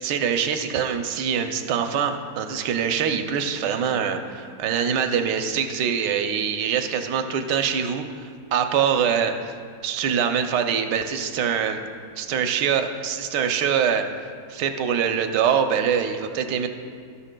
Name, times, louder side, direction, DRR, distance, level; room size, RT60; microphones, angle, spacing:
voice 1, 0.0-9.4 9.8-11.8 12.2-14.0 14.5-16.7, right 7 dB, 70° right, 7 dB, 1.1 m, -24 dB
13.0 x 11.5 x 2.2 m, 2.1 s
omnidirectional pair, 2.3 m